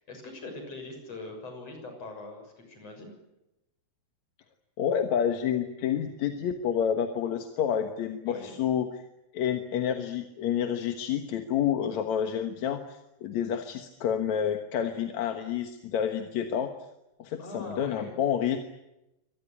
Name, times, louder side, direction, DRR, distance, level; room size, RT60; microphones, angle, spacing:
voice 1, 0.0-3.1 8.3-8.5 17.4-18.2, left 2 dB, 45° left, 5 dB, 7.7 m, -42 dB
voice 2, 4.8-8.9 9.3-16.7 17.2-18.6, left 8 dB, 60° left, 7 dB, 2.4 m, -29 dB
25.0 x 19.0 x 9.9 m, 0.92 s
omnidirectional pair, 3.9 m